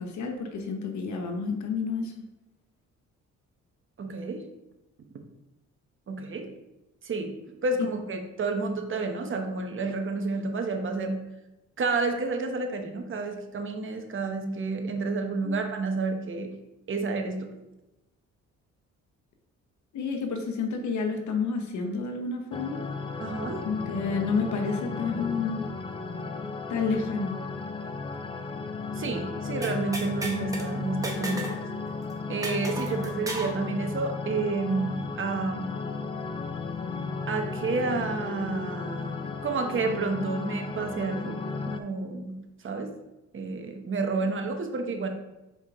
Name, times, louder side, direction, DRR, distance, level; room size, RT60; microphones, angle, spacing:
voice 1, 0.0-2.1 15.4-15.5 19.9-22.8 23.6-25.7 26.7-27.4, left 5 dB, 70° left, 4 dB, 0.9 m, -30 dB
voice 2, 4.0-4.4 6.1-6.5 7.0-7.3 7.6-11.2 11.8-16.5 16.9-17.5 23.2-23.6 28.9-31.5 32.3-36.0 37.3-39.1 39.4-41.4 41.7-42.4 42.6-42.9 43.3-45.1, right 3 dB, 40° right, 5 dB, 1.0 m, -30 dB
sound 1, 22.5-41.8, left 4 dB, 20° left, 0.5 m, -34 dB
sound 2, 29.6-30.7 31.0-31.6 31.9-32.0 32.4-33.6, right 2 dB, 10° right, 1.1 m, -34 dB
5.5 x 4.8 x 3.6 m, 0.96 s
cardioid pair, 90°, 30 cm